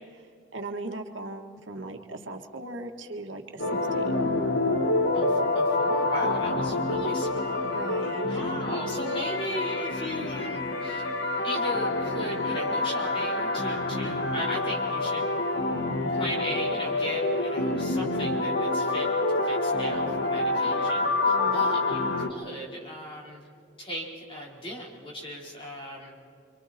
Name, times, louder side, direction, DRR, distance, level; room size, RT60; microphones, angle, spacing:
voice 1, 0.5-4.1 7.6-8.6 21.2-21.8, right 2 dB, 75° right, 5 dB, 1.7 m, -38 dB
sound 1, 3.6-22.3, left 2 dB, 60° left, 1.6 m, -27 dB
voice 2, 5.1-7.7 8.3-11.1 11.4-15.3 16.1-19.1 19.4-23.4 23.8-26.2, equal, 30° left, -3 dB, 4.3 m, -37 dB
29.0 x 25.0 x 4.4 m, 2.4 s
head